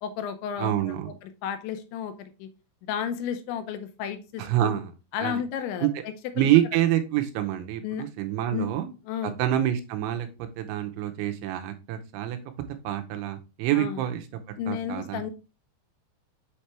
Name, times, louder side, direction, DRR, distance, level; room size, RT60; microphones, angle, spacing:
voice 1, 0.0-1.0 1.2-2.5 2.9-4.7 5.1-6.5 7.8-8.0 8.5-8.7 9.1-9.4 13.8-14.0 14.6-15.3, left 8 dB, 80° left, 8 dB, 2.9 m, -33 dB
voice 2, 0.6-1.1 4.4-4.9 5.2-5.4 5.8-5.9 6.4-8.9 9.2-10.3 10.6-12.4 12.8-14.2 14.7-15.3, right 12 dB, 90° right, 7 dB, 3.1 m, -26 dB
7.4 x 4.3 x 3.3 m, 0.30 s
omnidirectional pair, 5.4 m